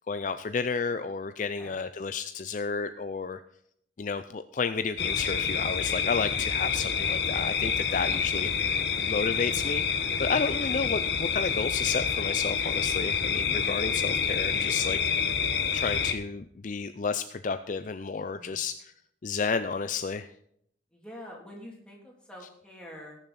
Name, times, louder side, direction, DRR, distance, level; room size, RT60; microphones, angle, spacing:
voice 1, 0.1-3.4 4.0-8.5 9.1-15.0 15.7-18.9 19.2-20.3, left 5 dB, 45° left, 10 dB, 0.4 m, -31 dB
voice 2, 1.4-1.8 18.3-18.6 20.9-23.2, equal, 5° left, -2 dB, 3.1 m, -46 dB
sound 1, 5.0-16.1, left 6 dB, 60° left, 1.2 m, -28 dB
20.0 x 7.0 x 4.2 m, 0.70 s
head